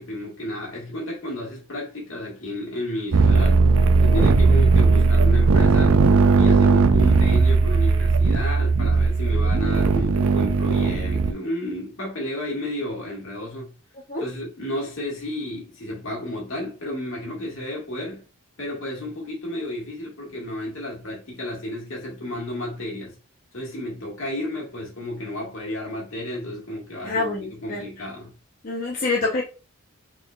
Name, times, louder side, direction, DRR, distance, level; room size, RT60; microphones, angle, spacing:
voice 1, 0.0-3.7 4.0-6.0 6.4-13.7 14.2-18.2 18.6-23.2 23.5-28.3, left 1 dB, 70° left, 1.8 m, -32 dB
sound 1, 3.1-11.3, right 4 dB, 80° right, 0.4 m, -17 dB
voice 2, 27.0-27.9 28.6-29.4, left 3 dB, 40° left, 0.7 m, -26 dB
3.9 x 3.7 x 2.3 m
head